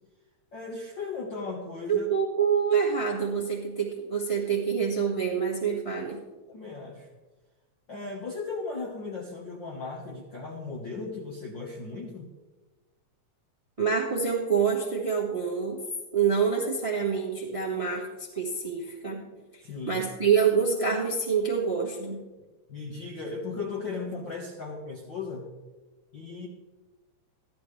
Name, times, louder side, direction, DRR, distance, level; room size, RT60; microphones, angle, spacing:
voice 1, 0.5-2.1 6.5-7.1 7.9-12.3 19.6-20.0 22.7-25.5 26.1-26.5, left 4 dB, 50° left, -1 dB, 1.5 m, -36 dB
voice 2, 1.9-6.2 13.8-15.8 16.1-22.2, right 6 dB, 20° right, -1 dB, 0.8 m, -27 dB
14.0 x 12.5 x 3.3 m, 1.2 s
omnidirectional pair, 3.5 m